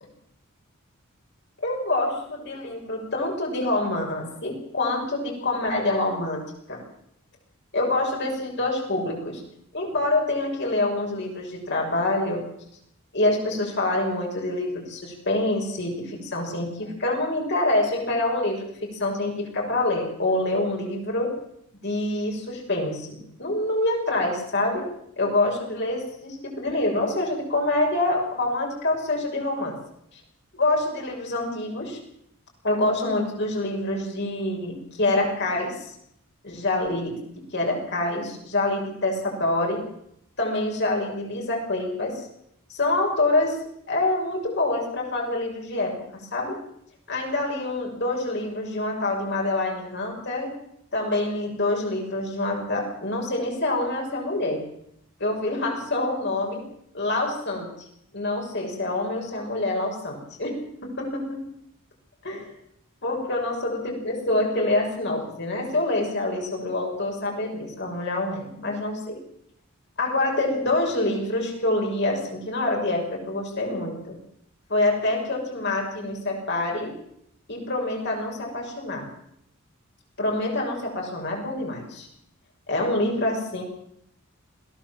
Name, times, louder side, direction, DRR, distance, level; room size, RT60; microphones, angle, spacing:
voice 1, 1.6-6.4 6.7-6.8 7.7-9.4 9.7-12.4 13.1-21.3 21.8-24.9 25.2-29.8 30.5-32.0 32.6-35.7 36.4-37.1 37.5-39.8 40.4-42.2 42.7-43.6 43.9-46.0 46.3-46.6 47.1-50.5 50.9-54.6 55.2-56.6 56.9-57.7 58.1-61.4 62.2-62.5 63.0-69.2 70.0-74.2 74.7-76.9 77.5-79.1 80.2-82.1 82.7-83.6, left 2 dB, 50° left, 0 dB, 6.5 m, -26 dB
21.0 x 16.5 x 7.6 m, 0.75 s
head